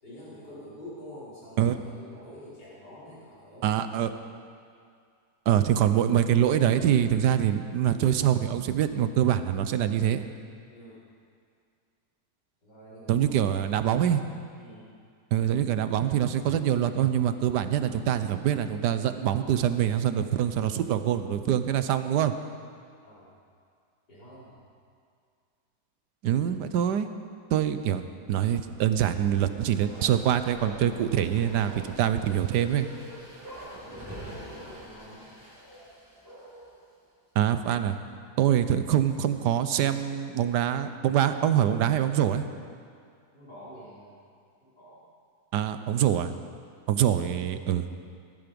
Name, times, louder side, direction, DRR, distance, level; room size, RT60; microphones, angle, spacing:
voice 1, 0.0-3.8 10.7-11.0 12.6-13.8 14.6-14.9 23.0-23.3 24.1-24.6 33.7-35.3 43.3-44.2 44.6-45.0, equal, 75° left, -10 dB, 5.6 m, -47 dB
voice 2, 3.6-4.1 5.5-10.2 13.1-14.2 15.3-22.3 26.2-27.1 27.5-32.9 37.3-38.0 38.4-42.4 45.5-46.3 46.9-47.9, right 10 dB, 80° right, 10 dB, 1.4 m, -24 dB
Bark, 29.2-36.8 37.1-37.2, right 1 dB, 15° right, 4.7 m, -44 dB
19.0 x 13.0 x 5.2 m, 2.2 s
omnidirectional pair, 1.8 m